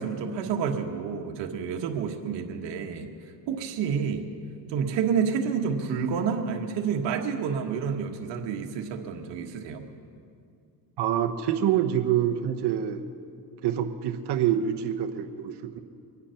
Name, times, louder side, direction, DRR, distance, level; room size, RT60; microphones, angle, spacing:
voice 1, 0.0-3.1 3.5-4.2 4.7-9.8, right 6 dB, 90° right, 4 dB, 1.5 m, -29 dB
voice 2, 11.0-13.0 13.6-15.8, right 10 dB, 70° right, 6 dB, 1.1 m, -26 dB
24.0 x 9.7 x 5.7 m, 2.4 s
cardioid pair, 100°, 42 cm